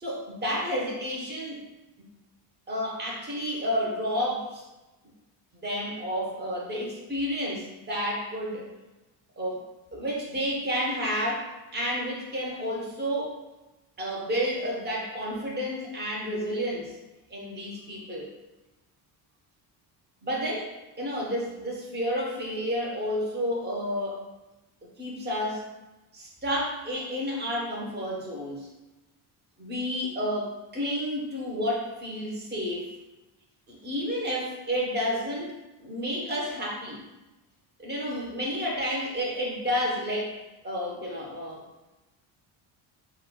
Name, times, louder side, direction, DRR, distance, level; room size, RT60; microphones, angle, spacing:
voice 1, 0.0-1.6 2.7-4.6 5.6-8.7 9.4-9.6 9.9-13.3 14.0-16.9 17.3-18.3 20.2-20.7 21.0-24.2 25.0-25.7 26.1-28.7 29.6-32.9 33.7-35.5 35.8-37.1 37.8-40.3 40.6-41.6, equal, 20° right, -3 dB, 0.9 m, -30 dB
5.3 x 2.2 x 2.2 m, 1.1 s
cardioid pair, 110°, 47 cm